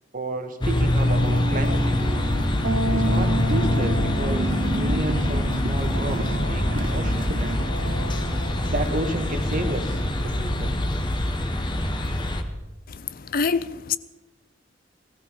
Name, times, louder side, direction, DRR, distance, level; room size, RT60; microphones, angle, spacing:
voice 1, 0.1-2.3 2.9-7.6 8.7-10.8, right 1 dB, 45° right, 1.7 m, -31 dB
sound 1, 0.6-12.4, left 1 dB, 25° left, 1.3 m, -24 dB
sound 2, 1.0-10.1, right 1 dB, 65° right, 2.1 m, -31 dB
Walk footsteps, 3.9-4.2 4.5-9.1, right 2 dB, 90° right, 1.2 m, -39 dB
voice 2, 12.9-14.0, left 5 dB, 50° left, 0.5 m, -26 dB
19.0 x 14.5 x 5.2 m
head